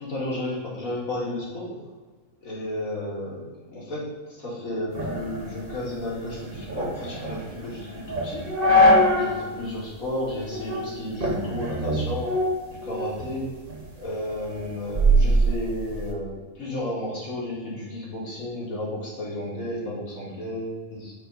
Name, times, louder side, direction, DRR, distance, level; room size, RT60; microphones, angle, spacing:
voice 1, 0.1-1.8 2.4-4.1 4.4-8.4 9.1-12.3 12.7-13.5 14.0-21.1, left 1 dB, 70° left, -6 dB, 2.4 m, -32 dB
sound 1, 4.9-9.4 9.8-9.9 10.5-10.9 11.2-13.3 13.7-16.1, equal, 40° right, 1.3 m, -23 dB
5.6 x 3.9 x 5.4 m, 1.4 s
omnidirectional pair, 1.5 m